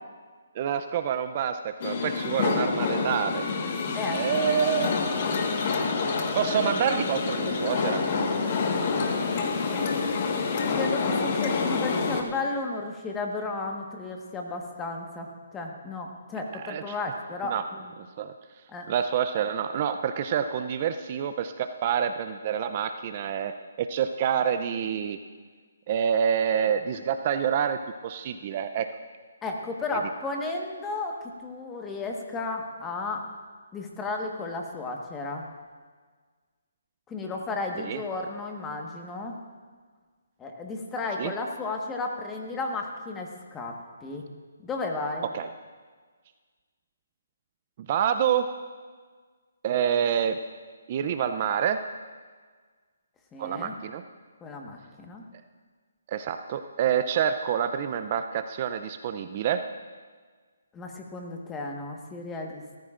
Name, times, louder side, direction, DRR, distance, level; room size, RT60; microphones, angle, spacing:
voice 1, 0.6-3.5 4.1-4.9 5.8-5.9 6.3-8.0 16.5-16.9 17.4-17.6 18.2-18.3 18.9-25.2 25.9-28.9 37.8-38.0 41.2-41.3 45.3-45.5 47.9-48.5 49.6-50.4 50.9-51.8 53.4-54.0 56.1-59.6, right 8 dB, 40° right, 9 dB, 0.5 m, -27 dB
sound 1, 1.8-12.2, left 4 dB, 40° left, 1.5 m, -27 dB
voice 2, 10.5-17.9 18.7-18.9 29.4-33.3 33.7-35.5 37.1-39.4 40.4-43.8 44.0-44.2 44.6-45.3 53.3-53.7 54.4-55.2 60.7-62.6, left 3 dB, 15° left, 1 dB, 1.4 m, -33 dB
18.5 x 14.0 x 2.5 m, 1.5 s
hypercardioid pair, 150°, 0 cm